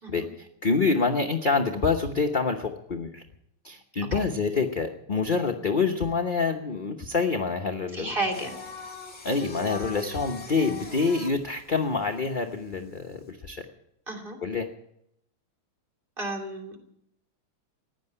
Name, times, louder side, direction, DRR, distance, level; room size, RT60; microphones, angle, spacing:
voice 1, 0.1-3.2 3.6-8.1 9.2-13.7 14.4-14.7, left 4 dB, 40° left, 3 dB, 0.7 m, -26 dB
voice 2, 7.9-8.5 14.1-14.4 16.2-16.7, right 2 dB, 25° right, 3 dB, 2.8 m, -32 dB
Singing, 8.3-13.3, left 5 dB, 20° left, 1.8 m, -41 dB
15.5 x 10.5 x 8.8 m, 0.78 s
omnidirectional pair, 2.3 m